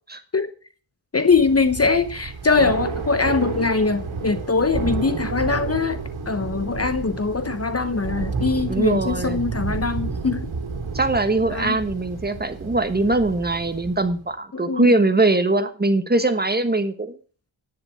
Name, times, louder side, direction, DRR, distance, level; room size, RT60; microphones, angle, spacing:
voice 1, 1.1-6.0 6.3-10.5 11.5-11.8 14.5-15.0, left 4 dB, 30° left, 0.9 m, -22 dB
Thunder / Rain, 1.3-14.2, right 5 dB, 75° right, 2.7 m, -31 dB
voice 2, 8.7-9.4 10.9-17.1, right 2 dB, 20° right, 1.3 m, -21 dB
10.5 x 10.5 x 5.4 m
wide cardioid pair, 140°, 48 cm